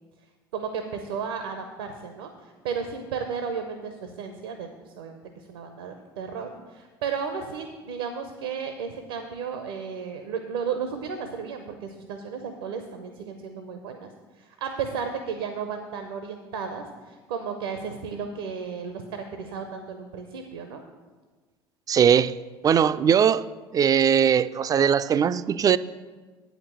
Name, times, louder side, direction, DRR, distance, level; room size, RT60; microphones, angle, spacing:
voice 1, 0.5-14.1 14.3-20.8, right 6 dB, 70° right, 0.7 m, -34 dB
voice 2, 21.9-22.4 22.6-23.4 23.7-25.8, right 8 dB, 30° right, 0.3 m, -20 dB
8.5 x 5.1 x 7.7 m
figure-of-eight pair, 65°, 13 cm